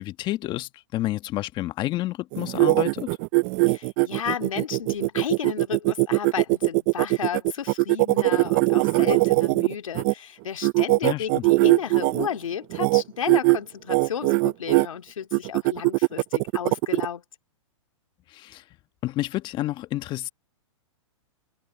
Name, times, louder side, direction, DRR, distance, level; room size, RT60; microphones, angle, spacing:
voice 1, 0.0-3.2 11.0-11.4 18.3-18.6 19.0-20.3, left 16 dB, 30° left, 1.4 m, -29 dB
sound 1, 2.3-10.1 10.6-12.3 12.7-13.0 13.3-13.6 13.9-14.9 15.3-17.1, right 25 dB, 35° right, 0.7 m, -21 dB
voice 2, 3.7-17.2, left 8 dB, 80° left, 2.8 m, -33 dB
hypercardioid pair, 135°, 17 cm